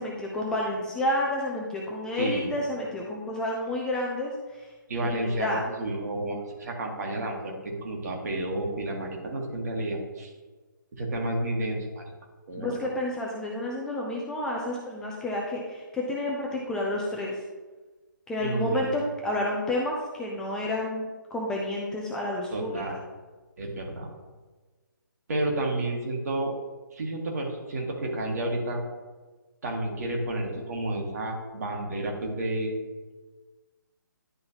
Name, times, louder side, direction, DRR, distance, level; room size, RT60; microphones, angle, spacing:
voice 1, 0.0-4.7 5.0-5.6 12.6-17.4 18.3-22.8, left 1 dB, 5° left, -3 dB, 0.5 m, -30 dB
voice 2, 2.1-2.5 4.9-10.3 11.0-12.1 12.5-12.8 18.4-18.9 22.5-23.0 23.6-24.1 25.3-26.5 26.9-28.8 29.6-32.8, right 1 dB, 50° right, 0 dB, 1.7 m, -31 dB
10.5 x 3.8 x 2.9 m, 1.3 s
figure-of-eight pair, 140°, 11 cm